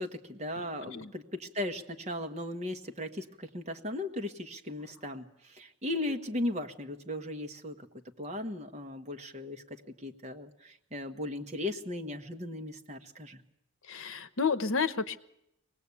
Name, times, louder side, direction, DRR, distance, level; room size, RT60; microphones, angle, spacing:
voice 1, 0.0-7.9 8.2-13.4, left 1 dB, 30° right, 4 dB, 1.3 m, -37 dB
voice 2, 13.9-15.2, left 5 dB, 65° left, 13 dB, 0.9 m, -30 dB
24.5 x 18.5 x 8.5 m, 0.83 s
head